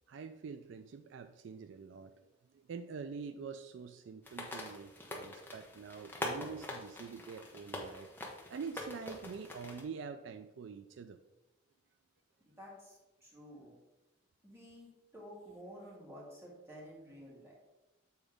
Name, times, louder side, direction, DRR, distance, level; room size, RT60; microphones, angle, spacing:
voice 1, 0.1-2.1 2.5-8.1 8.5-11.2, right 5 dB, 65° right, 9 dB, 0.3 m, -46 dB
sound 1, 4.2-9.8, left 1 dB, 10° left, 0.9 m, -44 dB
voice 2, 12.4-13.7 14.4-17.5, equal, 15° right, -5 dB, 2.3 m, -52 dB
7.1 x 3.9 x 4.9 m, 1.0 s
head